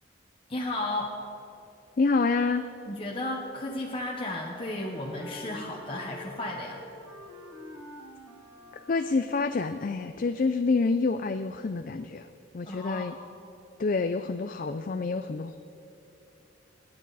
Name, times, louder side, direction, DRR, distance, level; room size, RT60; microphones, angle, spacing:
voice 1, 0.5-1.2 2.9-6.8 12.6-13.1, left 1 dB, 30° left, -2 dB, 1.1 m, -34 dB
voice 2, 2.0-2.6 8.9-12.3 12.5-13.1 13.8-15.6, left 4 dB, 45° left, 8 dB, 0.4 m, -27 dB
Wind instrument woodwind instrument, 4.5-9.5, equal, 10° right, 2.3 m, -47 dB
27.0 x 9.8 x 4.1 m, 2.9 s
head